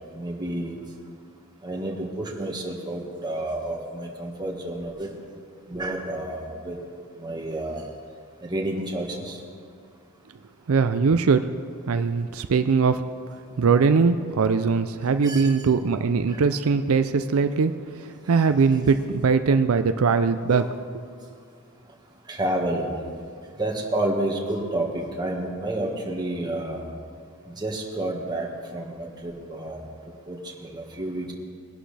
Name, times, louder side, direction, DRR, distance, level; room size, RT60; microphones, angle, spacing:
voice 1, 0.2-0.7 1.6-5.1 5.7-6.8 7.2-7.8 8.5-9.4 15.2-15.5 20.5-20.6 22.3-22.9 23.6-26.8 27.6-28.5 28.7-29.8 30.3-30.4 30.7-31.3, right 1 dB, 20° right, 0 dB, 1.6 m, -29 dB
voice 2, 10.7-11.4 11.9-13.0 13.6-17.7 18.3-20.7, right 5 dB, 80° right, 9 dB, 0.5 m, -21 dB
21.5 x 11.5 x 3.4 m, 2.1 s
head